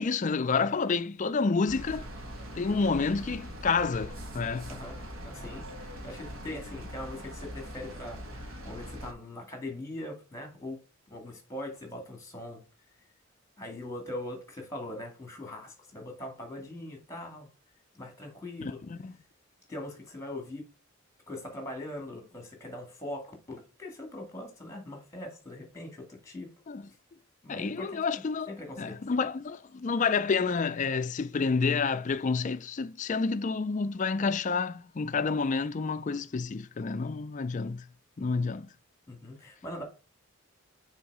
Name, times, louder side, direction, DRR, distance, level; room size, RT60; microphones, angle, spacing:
voice 1, 0.0-2.1 2.6-4.7 18.6-19.1 26.7-26.9 27.5-37.8 38.2-38.7, left 4 dB, 35° left, 0.3 m, -29 dB
sound 1, 1.7-9.1, equal, 65° right, 1.5 m, -42 dB
voice 2, 5.2-10.8 11.1-12.6 13.6-17.5 17.9-18.8 19.7-20.6 21.3-26.5 27.4-28.2 28.5-29.0 38.2-38.3 39.1-39.8, left 1 dB, 15° left, 2.0 m, -41 dB
6.4 x 4.0 x 4.7 m
head